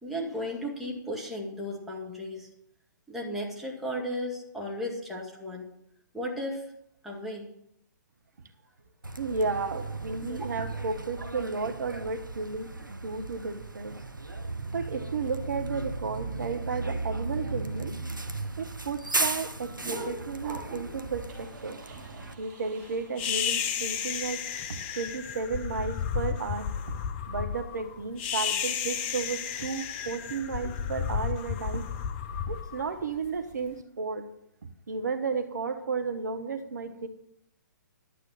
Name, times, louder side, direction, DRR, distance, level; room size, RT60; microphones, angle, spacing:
voice 1, 0.0-2.5 3.1-5.6 6.1-6.7 7.0-7.5 10.2-10.4, equal, ahead, -3 dB, 2.1 m, -35 dB
Bus, 9.0-22.3, right 2 dB, 90° right, 1.0 m, -36 dB
voice 2, 9.2-13.9 14.7-17.9 18.6-21.8 22.4-24.4 24.7-27.0 27.3-31.8 32.5-34.2 34.9-37.1, right 4 dB, 65° right, 8 dB, 1.2 m, -33 dB
sound 1, 18.2-23.3, right 2 dB, 35° right, 4.9 m, -44 dB
sound 2, 23.2-33.5, left 8 dB, 30° left, 0.8 m, -33 dB
11.5 x 7.9 x 5.7 m, 0.75 s
figure-of-eight pair, 125°, 10 cm